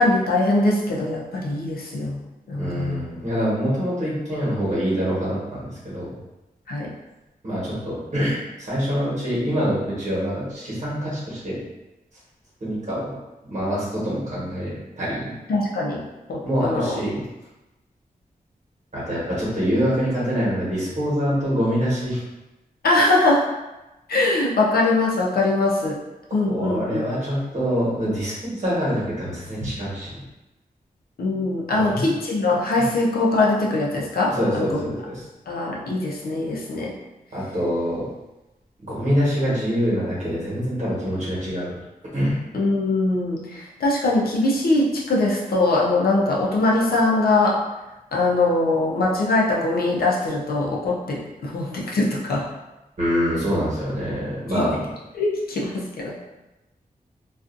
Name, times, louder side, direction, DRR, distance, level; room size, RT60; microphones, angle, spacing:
voice 1, 0.0-3.1 6.7-6.9 15.5-17.0 22.8-23.5 24.1-26.0 26.3-27.0 31.2-34.8 35.5-36.9 42.5-47.6 48.1-52.5 54.5-54.8 55.1-56.1, left 2 dB, 85° left, -3 dB, 0.6 m, -22 dB
voice 2, 2.6-6.1 7.4-11.6 12.6-13.1 13.4-15.3 16.4-17.2 18.9-22.2 26.5-30.2 31.7-32.1 32.8-32.9 34.3-35.2 37.3-38.1 38.8-41.7 42.1-42.4 53.0-54.8, equal, 50° right, -8 dB, 1.2 m, -25 dB
2.4 x 2.4 x 2.5 m, 1.0 s
wide cardioid pair, 140°, 15 cm